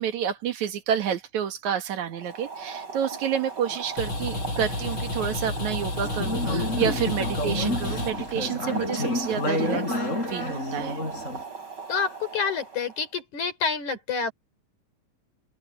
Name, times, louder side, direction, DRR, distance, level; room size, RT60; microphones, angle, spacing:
voice 1, 0.0-10.0 10.3-11.0, right 8 dB, 80° right, 3.0 m, -29 dB
Boiling, 2.1-13.1, right 5 dB, 35° right, 8.4 m, -39 dB
sound 1, 3.7-8.9, left 2 dB, 40° left, 8.7 m, -32 dB
Conversation / Chatter, 6.0-11.4, left 1 dB, 25° left, 4.2 m, -29 dB
voice 2, 11.9-14.3, left 5 dB, 80° left, 5.9 m, -28 dB
open air
omnidirectional pair, 3.4 m